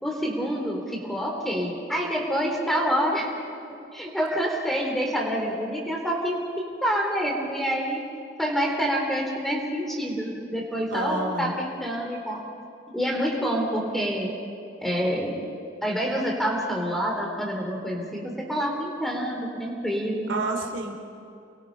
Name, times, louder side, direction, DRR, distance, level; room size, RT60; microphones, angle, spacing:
voice 1, 0.0-3.3 3.9-8.0 8.4-12.4 12.9-14.4 14.8-15.4 15.8-20.3, equal, ahead, 0 dB, 3.8 m, -27 dB
voice 2, 10.9-11.5 20.3-20.9, right 2 dB, 80° right, 2 dB, 3.1 m, -29 dB
29.5 x 22.5 x 5.6 m, 2.6 s
head